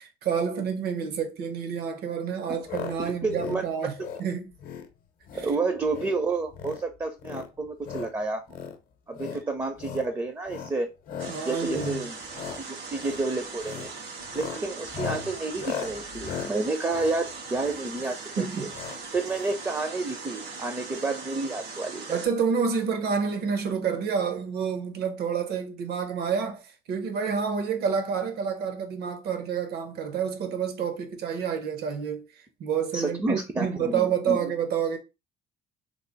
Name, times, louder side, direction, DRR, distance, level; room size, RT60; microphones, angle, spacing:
voice 1, 0.0-3.9 4.2-4.5 5.3-5.5 11.3-12.1 18.4-18.7 22.1-35.0, right 6 dB, 70° right, 0.8 m, -29 dB
sound 1, 2.7-3.0 3.2-3.6 4.0-4.3 4.6-4.9 5.2-5.5 5.8-6.2 6.5-6.8 7.2-8.1 8.5-8.7 9.1-9.4 9.8-10.1 10.5-10.7 11.1-11.4 11.7-12.0 12.3-12.6 13.0-13.2 13.6-13.9 14.2-17.9 18.7-19.0 19.3-19.4 19.5-19.6, left 8 dB, 60° left, 0.7 m, -37 dB
voice 2, 3.0-3.6 5.3-8.4 9.1-10.9 11.3-12.2 12.6-13.9 14.3-18.7 19.1-22.2 32.9-34.5, right 3 dB, 15° right, 0.5 m, -30 dB
sound 2, 11.2-22.3, right 4 dB, 85° right, 1.6 m, -40 dB
3.2 x 2.0 x 3.9 m
cardioid pair, 110°, 17 cm